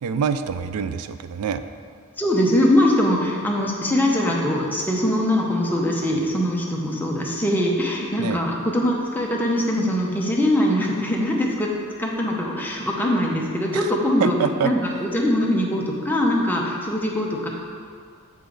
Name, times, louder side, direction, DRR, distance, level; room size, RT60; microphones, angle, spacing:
voice 1, 0.0-1.6 8.2-8.4 13.7-13.9 14.2-14.7, right 7 dB, 80° right, 11 dB, 0.4 m, -25 dB
voice 2, 2.2-11.7 12.0-14.4 14.6-17.5, left 1 dB, 10° left, -2 dB, 0.8 m, -22 dB
7.1 x 5.0 x 3.9 m, 2.1 s
head